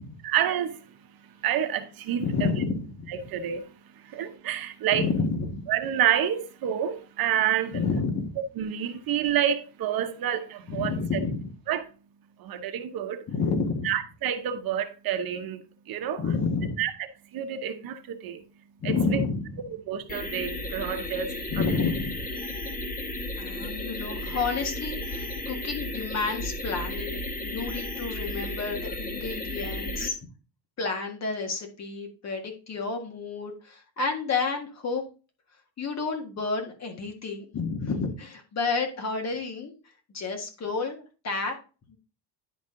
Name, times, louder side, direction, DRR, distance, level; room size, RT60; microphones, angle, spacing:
voice 1, 0.2-0.8 1.4-2.5 3.2-3.7 4.0-5.0 5.7-7.8 8.6-10.9 11.7-11.9 12.4-13.2 13.8-16.2 16.8-16.9 17.3-18.4 18.8-19.2 19.9-21.3 21.6-21.8, right 10 dB, 60° right, 0.9 m, -28 dB
voice 2, 2.2-3.1 4.9-5.7 7.7-8.3 10.7-11.5 13.3-13.9 16.2-16.8 18.8-19.6 21.5-22.2 23.4-30.2 30.8-35.0 35.8-39.7 40.1-41.5, left 4 dB, 40° left, 1.7 m, -30 dB
sound 1, 20.1-30.1, left 1 dB, 20° left, 1.2 m, -34 dB
10.0 x 4.2 x 3.7 m
cardioid pair, 135°, 41 cm